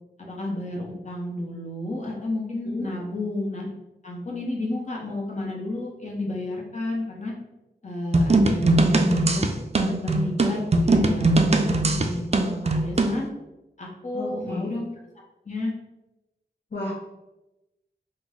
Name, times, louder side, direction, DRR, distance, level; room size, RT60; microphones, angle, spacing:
voice 1, 0.2-3.7 4.0-7.3 7.8-9.4 9.7-12.4 12.7-13.3 13.8-14.8 15.4-15.7, left 1 dB, 45° left, -3 dB, 1.0 m, -31 dB
sound 1, 8.1-13.2, right 2 dB, 35° right, 0.4 m, -21 dB
voice 2, 14.1-14.7 16.7-16.9, left 2 dB, 70° left, -4 dB, 0.7 m, -32 dB
3.9 x 2.2 x 3.5 m, 0.98 s
wide cardioid pair, 70°, 18 cm